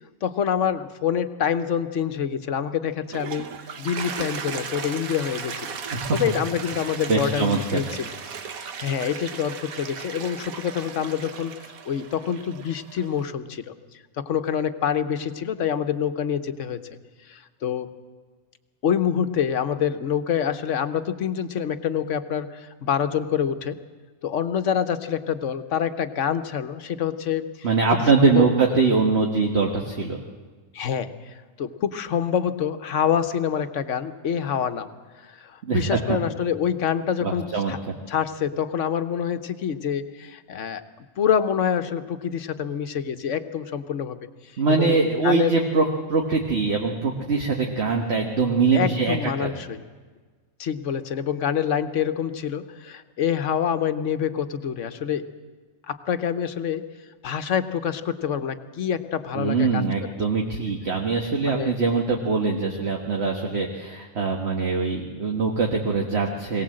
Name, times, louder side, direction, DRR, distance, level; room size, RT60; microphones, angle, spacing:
voice 1, 0.2-3.5 3.8-5.8 6.1-8.1 8.6-11.5 11.8-13.7 14.3-16.8 17.3-17.9 18.8-23.8 24.2-27.7 28.2-28.5 30.7-34.9 35.2-37.8 38.1-40.8 41.2-44.2 44.7-45.5 48.7-49.8 50.6-55.2 55.9-56.9 57.2-59.8 61.5-61.7, left 8 dB, 65° left, 10 dB, 1.3 m, -26 dB
Toilet flush, 2.9-13.2, right 6 dB, 90° right, 1.5 m, -36 dB
voice 2, 7.1-7.8 27.6-30.2 35.7-36.2 37.2-37.9 44.6-49.5 59.3-66.6, right 4 dB, 50° right, 1 dB, 1.7 m, -23 dB
22.5 x 17.5 x 7.7 m, 1.4 s
omnidirectional pair, 1.4 m